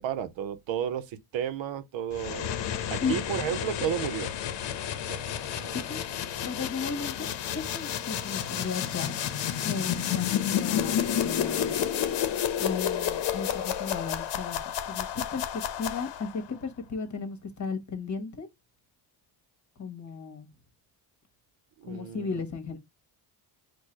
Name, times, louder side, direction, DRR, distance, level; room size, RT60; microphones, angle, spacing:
voice 1, 0.0-2.6 2.9-4.3 5.1-5.2 5.5-5.8 21.8-22.4, right 9 dB, 85° right, 0.8 m, -32 dB
sound 1, 2.1-16.4, left 9 dB, 70° left, 0.9 m, -30 dB
voice 2, 6.4-7.3 7.5-9.2 9.6-11.8 12.6-14.6 14.8-15.4 15.8-18.5 19.8-20.5 21.9-22.8, left 5 dB, 40° left, 1.4 m, -35 dB
4.6 x 2.3 x 4.5 m
cardioid pair, 120°, 45 cm